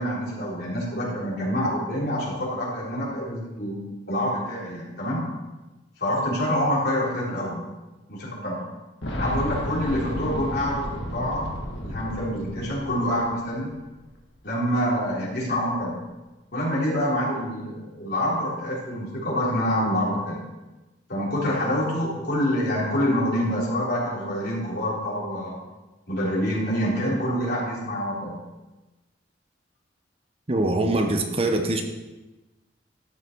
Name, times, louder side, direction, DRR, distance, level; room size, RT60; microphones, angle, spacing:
voice 1, 0.0-3.8 4.1-5.2 6.0-7.6 8.1-8.6 9.2-11.5 11.8-13.7 14.4-16.0 16.5-20.4 21.1-25.6 26.1-28.4, equal, 60° left, -6 dB, 3.9 m, -26 dB
Boom, 9.0-13.8 14.0-14.1 15.2-15.3, equal, 75° left, 1.6 m, -33 dB
voice 2, 30.5-31.8, right 2 dB, 30° right, 4 dB, 0.8 m, -23 dB
12.5 x 5.9 x 4.6 m, 1.1 s
head